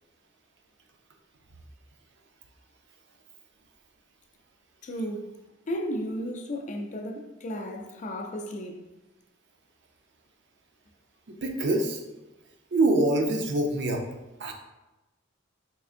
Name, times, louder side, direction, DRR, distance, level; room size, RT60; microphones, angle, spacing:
voice 1, 4.8-5.3 5.7-8.8, equal, 40° left, 0.4 m, -34 dB
voice 2, 11.3-12.0 12.7-14.0 14.4-14.5, right 2 dB, 65° right, 0.5 m, -25 dB
3.7 x 3.3 x 2.4 m
head